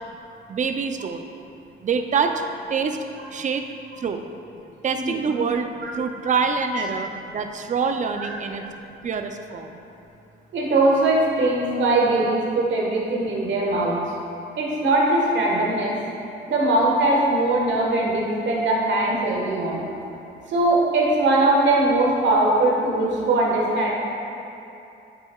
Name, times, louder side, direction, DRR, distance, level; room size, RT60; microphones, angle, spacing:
voice 1, 0.5-1.3 1.8-2.4 2.7-3.0 3.3-3.7 4.0-4.2 4.8-5.7 6.0-8.6 9.0-9.7, right 5 dB, 40° right, 6 dB, 0.5 m, -25 dB
voice 2, 10.5-14.0 14.6-16.0 16.5-19.8 20.5-23.9, right 2 dB, 70° right, -2 dB, 1.4 m, -21 dB
8.3 x 6.8 x 2.3 m, 2.8 s
cardioid pair, 90°, 20 cm